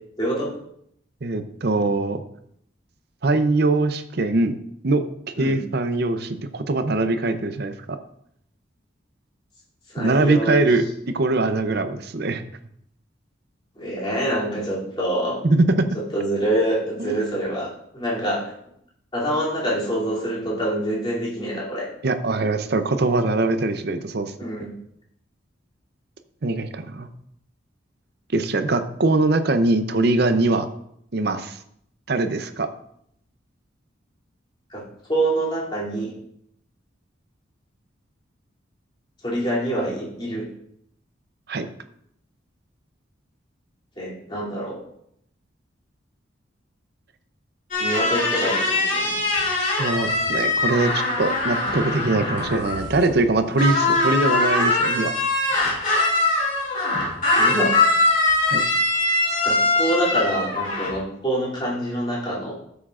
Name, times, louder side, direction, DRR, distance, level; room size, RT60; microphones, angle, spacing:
voice 1, 0.2-0.5 5.4-5.6 9.9-10.7 13.8-15.4 16.1-18.5 19.1-21.9 24.4-24.7 34.7-34.8 35.1-36.1 39.2-40.5 44.0-44.8 47.8-49.2 57.4-57.8 59.4-62.5, right 1 dB, 25° left, -6 dB, 2.8 m, -25 dB
voice 2, 1.2-2.2 3.2-4.6 4.8-8.0 10.0-12.4 15.4-15.9 17.0-17.2 22.0-24.3 26.4-27.1 28.3-30.7 31.1-31.6 32.1-32.7 41.5-41.7 49.8-55.1 58.5-58.6, right 2 dB, 55° right, 9 dB, 0.6 m, -22 dB
sound 1, 47.7-53.3 53.6-61.0, left 2 dB, 40° left, 2.5 m, -22 dB
13.0 x 7.1 x 2.5 m, 0.72 s
head